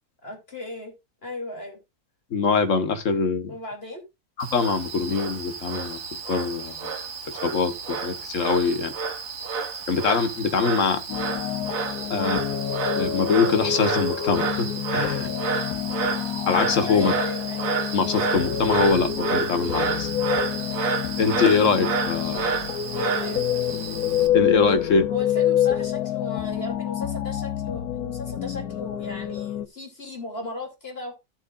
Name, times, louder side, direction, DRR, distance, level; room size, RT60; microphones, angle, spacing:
voice 1, 0.2-0.9 1.2-1.8 3.5-4.0 16.9-17.7 22.9-23.7 25.1-31.2, left 2 dB, 40° left, 3.1 m, -36 dB
voice 2, 2.3-3.5 4.4-6.0 6.3-6.9 7.3-8.9 9.9-11.0 12.1-12.4 13.0-15.3 16.5-17.1 17.9-20.1 21.2-22.4 24.3-25.1, left 5 dB, 55° left, 1.6 m, -23 dB
Frog, 4.4-24.3, right 5 dB, 65° right, 1.6 m, -30 dB
sound 1, 11.1-29.7, left 10 dB, 75° left, 1.3 m, -27 dB
14.0 x 7.6 x 2.5 m
omnidirectional pair, 1.6 m